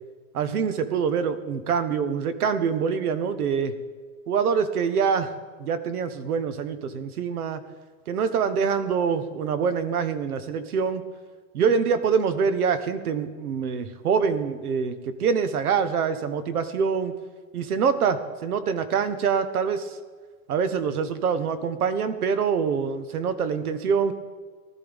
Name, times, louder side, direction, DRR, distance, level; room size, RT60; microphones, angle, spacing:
voice 1, 0.3-3.7 4.3-5.3 5.6-7.6 8.1-11.0 11.5-17.1 17.5-20.0 20.5-24.1, right 6 dB, 90° right, 11 dB, 1.3 m, -25 dB
19.0 x 12.5 x 3.6 m, 1.5 s
supercardioid pair, 165°, 43 cm